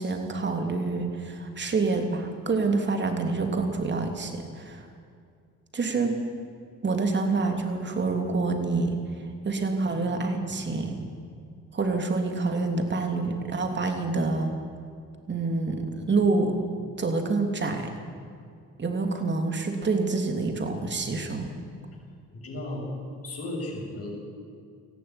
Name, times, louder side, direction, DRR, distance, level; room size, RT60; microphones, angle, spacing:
voice 1, 0.0-4.8 5.7-6.2 6.8-9.0 9.4-11.0 11.7-14.5 15.3-16.6 17.0-17.9 18.8-21.5, right 3 dB, 35° right, 4 dB, 3.1 m, -27 dB
voice 2, 22.3-22.9 23.2-24.1, left 1 dB, 50° left, -1 dB, 7.2 m, -35 dB
18.5 x 14.5 x 9.8 m, 2.3 s
cardioid pair, 90°, 30 cm